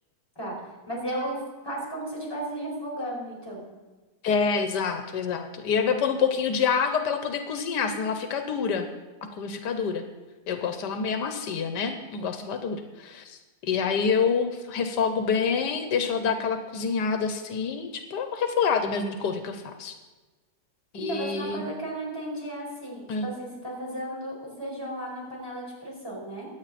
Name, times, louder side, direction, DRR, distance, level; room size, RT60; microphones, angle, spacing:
voice 1, 0.9-3.6 21.0-26.5, right 1 dB, 15° left, -5 dB, 4.9 m, -34 dB
voice 2, 4.2-8.9 9.3-10.0 10.5-20.0 20.9-21.6 23.1-23.3, left 6 dB, 90° left, 7 dB, 1.6 m, -27 dB
22.0 x 8.6 x 4.2 m, 1.2 s
omnidirectional pair, 1.8 m